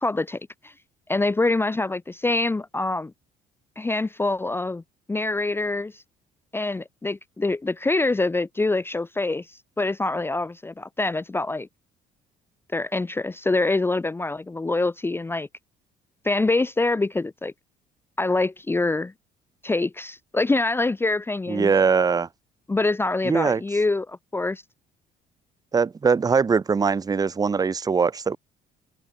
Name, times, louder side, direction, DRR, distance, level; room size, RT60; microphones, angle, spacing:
voice 1, 0.0-0.7 1.1-3.1 3.8-4.8 5.1-6.0 6.5-11.7 12.7-15.5 16.2-17.5 18.2-19.1 19.6-21.7 22.7-24.6, left 2 dB, 15° left, 0.8 m, -25 dB
voice 2, 21.5-22.3 23.2-23.6 25.7-28.4, right 5 dB, 20° right, 0.8 m, -21 dB
open air
cardioid pair, 110°, 17 cm